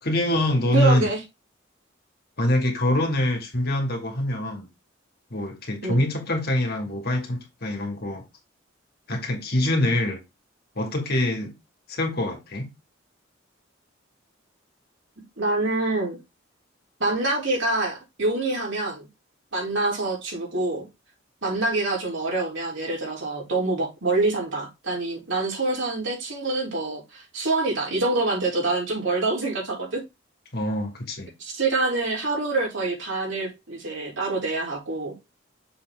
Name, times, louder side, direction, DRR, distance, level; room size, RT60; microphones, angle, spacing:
voice 1, 0.0-1.1 2.4-4.7 5.3-8.2 9.1-10.2 10.8-11.5 11.9-12.7 30.5-31.3, left 1 dB, 55° left, 2.3 m, -24 dB
voice 2, 0.7-1.2 5.8-6.0 15.4-16.2 17.0-19.1 19.5-20.8 21.4-30.0 31.4-35.1, right 2 dB, 75° right, 3.9 m, -26 dB
6.8 x 4.3 x 3.7 m
head